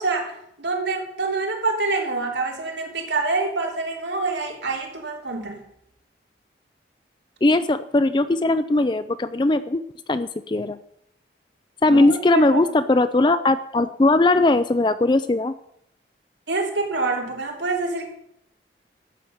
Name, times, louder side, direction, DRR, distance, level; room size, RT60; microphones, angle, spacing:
voice 1, 0.0-5.7 11.9-12.8 16.5-18.1, right 3 dB, 80° right, 2 dB, 3.0 m, -26 dB
voice 2, 7.4-9.8 10.1-10.8 11.8-15.5, left 2 dB, 25° left, 12 dB, 0.4 m, -19 dB
13.5 x 8.8 x 6.5 m, 0.75 s
head